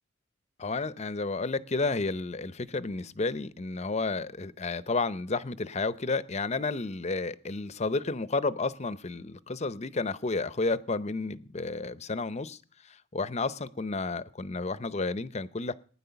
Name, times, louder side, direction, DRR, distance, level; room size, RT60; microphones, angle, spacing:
voice 1, 0.6-12.6 12.8-15.7, left 3 dB, 30° left, 16 dB, 0.6 m, -31 dB
19.0 x 9.9 x 6.9 m, 0.43 s
head